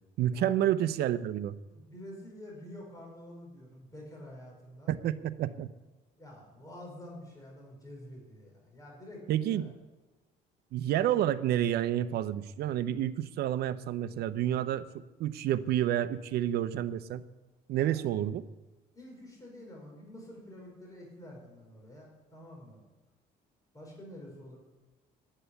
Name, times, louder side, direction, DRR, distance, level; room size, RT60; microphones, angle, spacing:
voice 1, 0.2-1.6 4.9-5.7 9.3-9.7 10.7-14.8 15.2-17.2 17.7-18.4, right 11 dB, 70° right, 13 dB, 0.7 m, -29 dB
voice 2, 1.7-4.9 6.2-9.7 17.7-18.0 18.9-22.8 23.7-24.6, left 1 dB, 20° left, -2 dB, 5.1 m, -48 dB
10.0 x 8.3 x 9.9 m, 1.2 s
cardioid pair, 110°, 17 cm